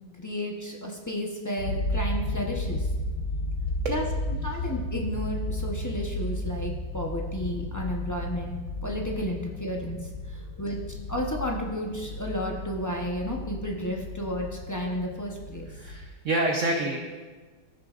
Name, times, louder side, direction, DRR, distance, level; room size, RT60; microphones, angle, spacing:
voice 1, 0.2-2.9 3.9-4.0 4.4-10.0 10.3-10.8 11.1-15.7, equal, 20° left, -1 dB, 0.5 m, -32 dB
sound 1, 1.6-16.1, left 1 dB, 85° left, 1.4 m, -33 dB
voice 2, 15.7-17.0, right 2 dB, 55° right, 1 dB, 0.9 m, -28 dB
15.0 x 6.6 x 2.5 m, 1.4 s
omnidirectional pair, 1.9 m